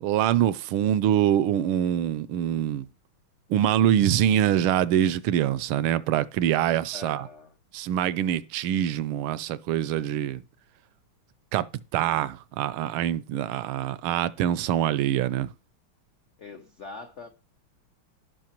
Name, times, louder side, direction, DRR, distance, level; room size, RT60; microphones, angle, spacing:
voice 1, 0.0-2.8 3.5-7.3 7.7-10.4 11.5-11.6 11.9-15.5, right 11 dB, 80° right, 1.4 m, -24 dB
voice 2, 6.9-7.5 16.4-17.3, left 4 dB, 70° left, 0.6 m, -42 dB
16.5 x 5.6 x 3.0 m
omnidirectional pair, 2.4 m